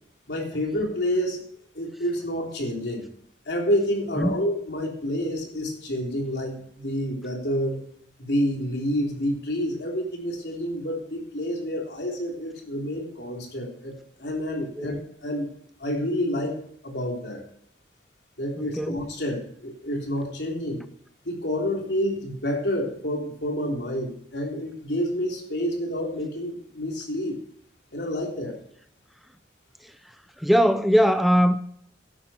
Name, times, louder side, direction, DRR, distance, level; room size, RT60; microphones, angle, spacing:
voice 1, 0.3-1.5 1.8-3.0 3.5-7.8 8.2-13.9 14.2-15.5 15.8-16.6 16.8-17.4 18.4-20.8 21.3-27.4 27.9-28.6, equal, 70° left, 3.5 m, -28 dB
voice 2, 30.4-31.6, equal, ahead, 0.5 m, -20 dB
12.0 x 10.5 x 4.4 m
head